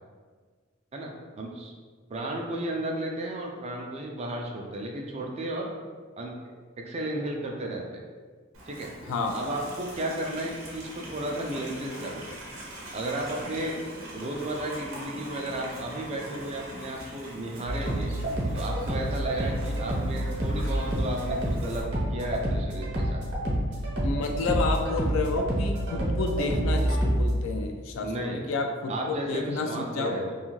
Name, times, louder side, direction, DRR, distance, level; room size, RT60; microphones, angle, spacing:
voice 1, 0.9-1.7 2.1-5.7 6.2-6.3 6.8-8.0 8.7-8.9 9.3-12.4 12.9-13.7 14.1-18.1 18.5-23.2 28.0-28.4 28.9-30.3, right 1 dB, 30° right, 0 dB, 0.3 m, -33 dB
Livestock farm animals working animals, 8.5-21.8, right 1 dB, 90° right, 0.7 m, -42 dB
sound 1, 17.7-27.3, right 1 dB, 55° right, 0.8 m, -28 dB
voice 2, 24.0-28.9 29.3-30.2, left 3 dB, 70° left, 4 dB, 0.3 m, -30 dB
2.5 x 2.3 x 3.0 m, 1.5 s
head